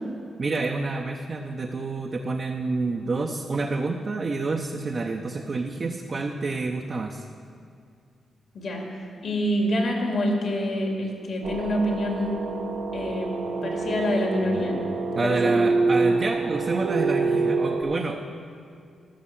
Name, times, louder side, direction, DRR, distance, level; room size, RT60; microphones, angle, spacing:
voice 1, 0.4-7.3 13.6-13.8 14.6-18.4, right 3 dB, 45° right, 2 dB, 0.7 m, -29 dB
voice 2, 9.2-12.4 12.9-13.3 13.6-14.8 15.1-15.5, left 1 dB, 65° left, 0 dB, 2.5 m, -26 dB
sound 1, 11.4-17.8, right 3 dB, 85° right, 1.1 m, -26 dB
12.5 x 6.5 x 7.4 m, 2.3 s
cardioid pair, 65°, 0 cm